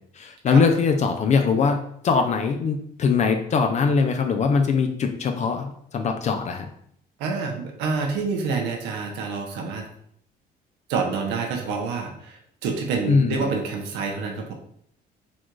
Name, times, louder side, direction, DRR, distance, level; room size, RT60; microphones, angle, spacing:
voice 1, 0.2-6.7 13.1-13.5, left 5 dB, 45° left, 5 dB, 0.5 m, -22 dB
voice 2, 7.2-9.8 10.9-14.5, right 4 dB, 90° right, 2 dB, 0.9 m, -27 dB
4.1 x 2.5 x 4.6 m, 0.67 s
cardioid pair, 110°, 17 cm